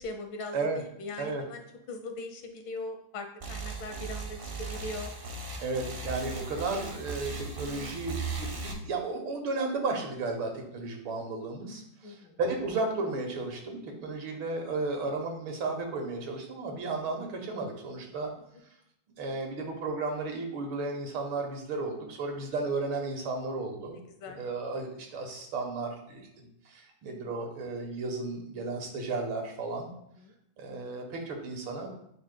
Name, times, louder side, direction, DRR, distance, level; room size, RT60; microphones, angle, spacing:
voice 1, 0.0-5.1 12.0-12.4 14.2-14.3 24.2-24.4 27.2-27.3 30.2-30.3, left 2 dB, 85° left, 5 dB, 1.7 m, -40 dB
sound 1, 3.4-8.7, right 3 dB, 50° right, 0.6 m, -37 dB
voice 2, 5.6-18.3 19.2-24.0 24.4-29.9 30.6-31.9, right 3 dB, 90° right, 2 dB, 2.0 m, -34 dB
7.7 x 5.6 x 2.2 m, 0.74 s
omnidirectional pair, 2.2 m